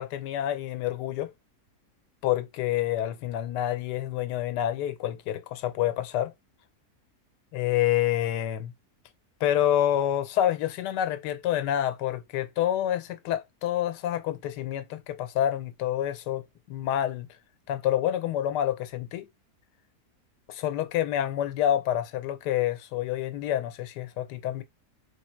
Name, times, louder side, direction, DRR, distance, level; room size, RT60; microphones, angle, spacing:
voice 1, 0.0-1.3 2.2-6.3 7.5-8.7 9.4-16.4 16.7-17.3 17.7-19.3 20.5-24.6, left 11 dB, 85° left, 1.2 m, -28 dB
3.5 x 3.3 x 4.4 m
omnidirectional pair, 1.8 m